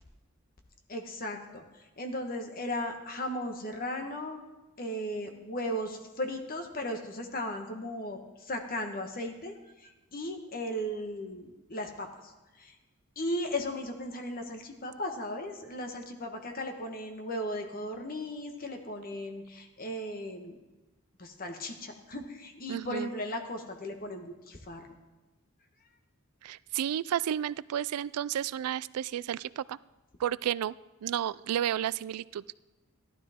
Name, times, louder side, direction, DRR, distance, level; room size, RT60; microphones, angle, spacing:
voice 1, 0.9-4.4 4.8-12.3 12.6-12.7 13.2-20.6 21.2-24.9, left 1 dB, 40° left, 4 dB, 1.3 m, -36 dB
voice 2, 22.7-23.1 26.4-29.8 30.2-30.7 31.0-32.4, right 10 dB, 80° right, 20 dB, 0.3 m, -32 dB
15.0 x 12.0 x 3.6 m, 1.1 s
head